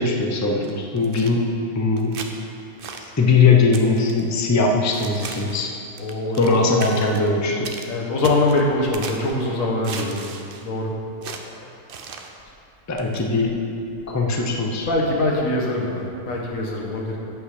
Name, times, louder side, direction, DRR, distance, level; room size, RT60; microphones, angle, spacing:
voice 1, 0.0-1.4 1.7-2.1 3.0-5.7 6.4-7.7 12.9-13.5 14.1-14.9, left 4 dB, 20° left, 1 dB, 0.5 m, -20 dB
sound 1, 0.6-1.3 2.0-2.3 2.8-3.1 3.7-4.3 4.9-5.6 6.0-6.6 6.8-7.3 7.6-7.9 8.2-9.3 9.8-10.7 11.2-11.4 11.9-12.3 13.0-13.2, right 5 dB, 55° right, 0.7 m, -36 dB
voice 2, 6.0-6.7 7.9-10.2 10.6-10.9 14.9-17.2, left 2 dB, 85° left, -1 dB, 1.7 m, -23 dB
8.5 x 5.5 x 6.4 m, 2.6 s
omnidirectional pair, 1.4 m